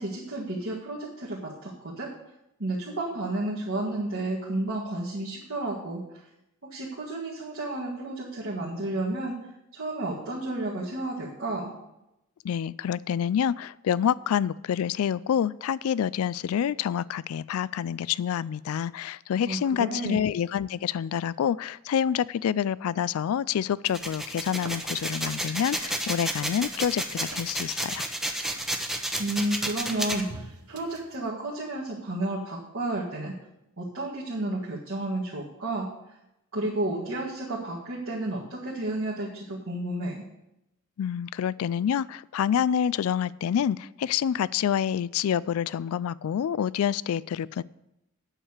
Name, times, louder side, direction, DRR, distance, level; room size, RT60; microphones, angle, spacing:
voice 1, 0.0-2.1 2.6-6.0 6.6-9.4 9.7-11.7 19.5-20.2 29.2-33.3 33.8-35.9 36.5-40.2, right 2 dB, 65° right, -6 dB, 1.8 m, -31 dB
voice 2, 12.4-28.0 41.0-47.6, left 8 dB, 80° left, 21 dB, 0.3 m, -27 dB
sound 1, 23.8-30.2, right 1 dB, ahead, 0.8 m, -31 dB
sound 2, 24.3-31.3, right 4 dB, 85° right, 0.9 m, -49 dB
8.8 x 6.5 x 7.1 m, 0.87 s
head